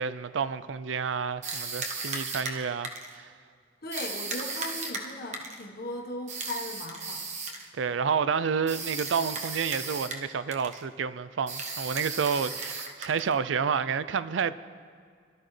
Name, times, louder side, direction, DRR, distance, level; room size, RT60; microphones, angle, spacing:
voice 1, 0.0-3.3 7.8-14.5, right 6 dB, 70° right, 0.4 m, -29 dB
sound 1, 1.4-3.2 3.9-5.6 6.3-7.7 8.7-10.3 10.5-10.8 11.5-13.4, right 4 dB, 40° right, 1.0 m, -36 dB
voice 2, 3.8-7.2, left 1 dB, 55° left, 1.4 m, -38 dB
22.5 x 12.5 x 3.3 m
head